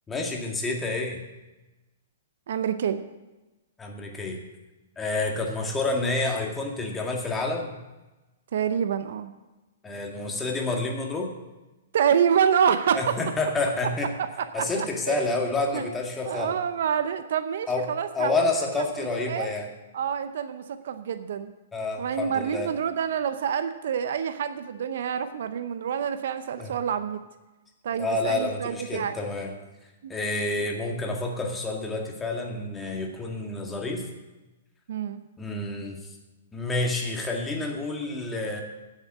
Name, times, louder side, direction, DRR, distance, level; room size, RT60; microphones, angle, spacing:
voice 1, 0.1-1.2 3.8-4.4 5.0-7.8 9.8-11.3 12.9-14.1 14.5-16.5 17.7-17.9 18.1-19.7 21.7-22.7 26.6-26.7 27.9-29.5 30.1-34.0 35.4-36.0 36.5-38.6, left 2 dB, 15° left, 1 dB, 2.0 m, -29 dB
voice 2, 2.5-3.0 8.5-9.3 11.9-13.2 14.2-15.3 15.7-15.8 16.3-18.3 18.8-18.9 19.3-19.5 19.9-21.5 22.0-27.2 27.8-29.2 30.0-30.1 34.9-35.2, right 8 dB, 60° right, 11 dB, 0.7 m, -27 dB
9.9 x 7.5 x 7.4 m, 1.1 s
hypercardioid pair, 120°, 0 cm